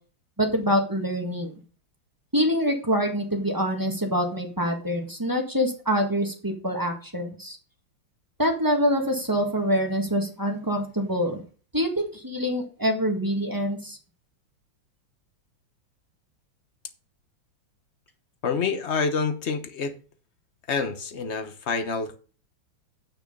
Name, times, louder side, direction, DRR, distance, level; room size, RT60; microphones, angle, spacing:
voice 1, 0.4-1.5 2.3-7.6 8.4-11.4 11.7-14.0, equal, 10° right, 1.5 m, -25 dB
voice 2, 18.4-19.9 20.7-22.2, left 5 dB, 45° left, 1.1 m, -27 dB
9.1 x 6.2 x 5.2 m
omnidirectional pair, 2.1 m